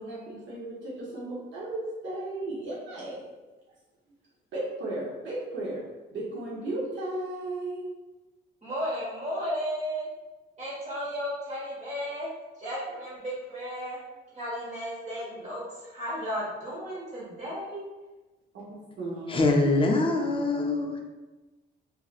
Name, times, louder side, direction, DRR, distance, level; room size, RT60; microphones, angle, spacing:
voice 1, 0.0-3.3 4.5-5.8 6.1-7.8 18.5-19.8, right 2 dB, 70° right, -6 dB, 0.8 m, -35 dB
voice 2, 8.6-10.1 10.6-12.3 12.6-14.0 14.3-17.8, equal, 35° right, -7 dB, 1.4 m, -34 dB
voice 3, 19.3-21.0, left 2 dB, 25° left, 2 dB, 0.5 m, -24 dB
3.1 x 2.5 x 2.3 m, 1.2 s
cardioid pair, 90°, 20 cm